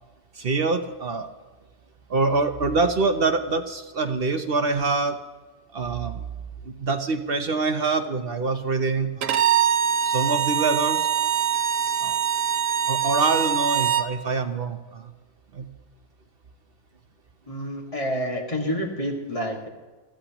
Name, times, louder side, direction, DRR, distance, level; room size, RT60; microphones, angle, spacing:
voice 1, 0.3-1.3 2.1-5.2 5.7-6.2 6.6-9.4 10.0-11.1 12.0-12.2 12.9-15.1 15.5-15.7, right 3 dB, 55° right, 7 dB, 0.9 m, -25 dB
Bowed string instrument, 9.2-14.1, right 9 dB, 90° right, 1.1 m, -23 dB
voice 2, 17.5-19.7, equal, 25° left, 0 dB, 1.9 m, -28 dB
22.0 x 14.5 x 3.0 m, 1.3 s
omnidirectional pair, 1.3 m